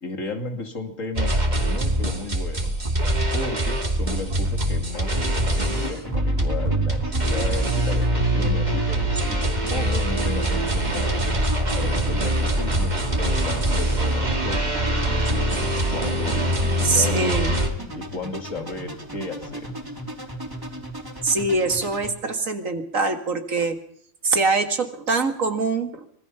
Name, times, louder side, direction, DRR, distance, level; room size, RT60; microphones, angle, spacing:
voice 1, 0.0-2.7 3.3-11.3 11.7-17.4 18.0-19.7, left 3 dB, 80° left, 5 dB, 3.0 m, -34 dB
sound 1, 1.2-17.7, right 1 dB, 35° right, 2.5 m, -23 dB
sound 2, 5.7-22.1, right 1 dB, 15° right, 3.5 m, -36 dB
voice 2, 16.8-17.5 21.2-23.8 24.2-26.1, right 3 dB, 85° right, 7 dB, 2.4 m, -23 dB
25.5 x 21.0 x 5.7 m, 0.64 s
omnidirectional pair, 1.3 m